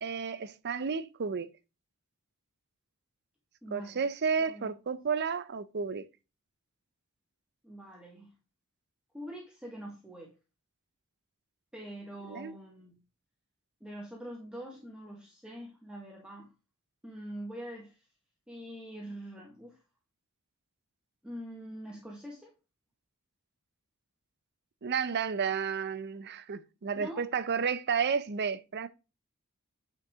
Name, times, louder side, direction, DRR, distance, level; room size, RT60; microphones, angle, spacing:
voice 1, 0.0-1.5 3.7-6.0 12.3-12.5 24.8-28.9, right 6 dB, 50° right, 0.5 m, -32 dB
voice 2, 3.6-4.0 4.4-4.7 7.6-8.3 9.1-10.3 11.7-12.9 13.8-16.5 17.0-18.0 18.5-19.8 21.2-22.5 26.9-27.2, equal, 5° right, 1.4 m, -44 dB
9.4 x 4.5 x 3.6 m
head